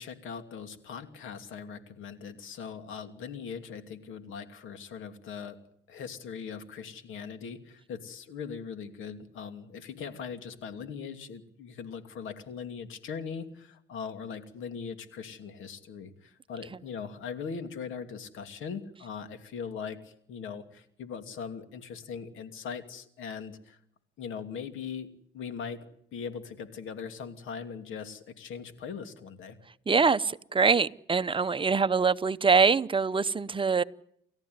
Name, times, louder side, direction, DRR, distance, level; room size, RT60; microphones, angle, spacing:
voice 1, 0.0-5.6 5.9-23.8 24.2-25.1 25.3-25.9 26.1-29.6, left 6 dB, 80° left, 8 dB, 2.8 m, -40 dB
voice 2, 29.9-33.8, right 5 dB, 25° right, 13 dB, 0.9 m, -24 dB
29.5 x 14.5 x 9.6 m, 0.72 s
cardioid pair, 90°, 20 cm